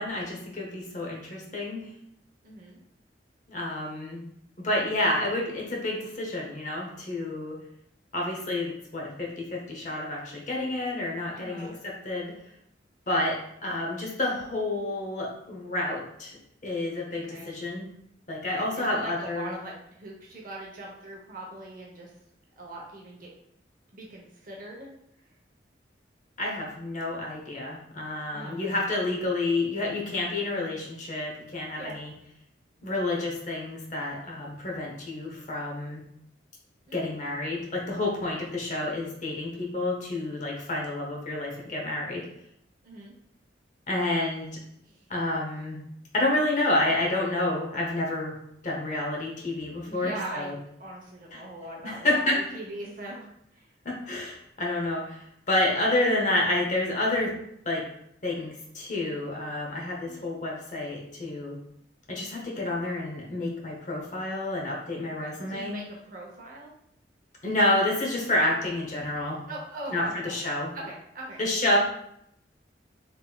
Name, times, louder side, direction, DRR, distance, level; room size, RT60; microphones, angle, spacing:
voice 1, 0.0-1.9 3.5-4.3 4.6-7.6 8.1-12.3 13.1-16.4 16.6-17.9 18.3-19.6 26.4-32.1 32.8-36.0 36.9-42.3 43.9-44.5 45.1-45.8 46.1-48.4 48.6-50.5 51.3-51.4 51.8-52.4 53.8-57.3 57.6-57.8 58.2-61.5 62.1-65.8 67.4-69.4 69.9-70.7 71.4-71.8, left 2 dB, 45° left, -2 dB, 0.8 m, -29 dB
voice 2, 2.4-2.8 11.3-11.7 17.1-17.5 18.5-22.1 22.6-23.3 23.9-24.9 28.3-28.6 31.8-32.0 36.9-37.1 42.8-43.1 44.9-45.1 49.8-50.5 50.8-53.7 60.1-60.3 65.2-66.7 69.5-70.3 70.7-71.4, right 2 dB, 50° right, -2 dB, 0.8 m, -41 dB
3.4 x 3.0 x 2.3 m, 0.74 s
head